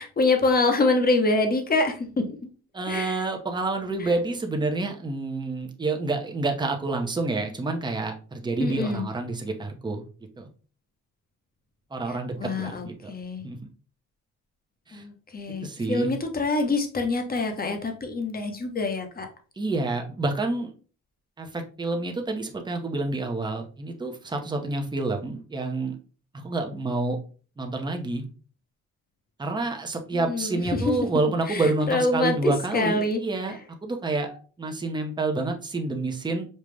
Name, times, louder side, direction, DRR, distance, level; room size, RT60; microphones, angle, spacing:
voice 1, 0.0-2.5 2.9-3.2 4.0-4.1 8.6-9.1 12.1-13.4 14.9-19.3 30.1-30.9 31.5-33.2, left 3 dB, 30° left, 5 dB, 1.0 m, -26 dB
voice 2, 2.7-10.0 10.4-10.5 11.9-13.1 13.4-13.7 14.9-15.0 15.6-16.1 19.6-20.7 21.4-25.9 26.3-27.2 27.6-28.2 29.4-36.5, right 3 dB, 15° right, 3 dB, 0.8 m, -28 dB
5.4 x 2.4 x 3.2 m, 0.38 s
cardioid pair, 90°, 30 cm